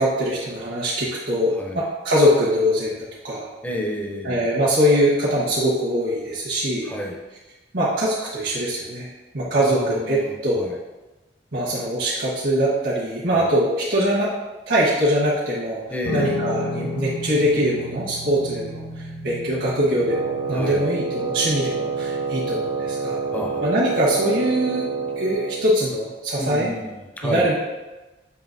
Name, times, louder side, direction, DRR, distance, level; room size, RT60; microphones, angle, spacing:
voice 1, 0.0-3.4 4.2-6.9 7.7-9.1 9.3-10.7 11.5-14.3 14.7-15.8 16.1-18.8 19.2-23.2 23.6-24.9 25.2-26.7 27.2-27.5, equal, 75° right, -8 dB, 1.2 m, -22 dB
voice 2, 3.6-4.5 6.8-7.2 9.6-10.7 13.3-13.5 15.9-16.4 20.5-20.8 23.3-23.6 26.4-27.5, equal, 10° left, 0 dB, 0.5 m, -30 dB
Guitar, 16.0-25.3, left 1 dB, 60° left, 0.8 m, -34 dB
Wind instrument woodwind instrument, 20.0-25.7, right 5 dB, 60° right, 0.5 m, -27 dB
7.0 x 2.8 x 2.6 m, 1.1 s
head